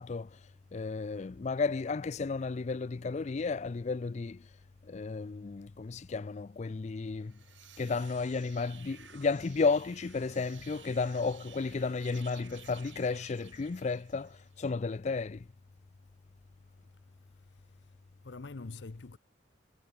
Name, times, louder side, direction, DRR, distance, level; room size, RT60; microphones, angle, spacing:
voice 1, 0.0-4.5 4.8-7.4 7.8-15.5, left 4 dB, 40° left, 0.4 m, -33 dB
sound 1, 7.1-14.6, right 10 dB, 85° right, 5.8 m, -55 dB
voice 2, 16.8-19.2, left 3 dB, 70° left, 0.7 m, -48 dB
head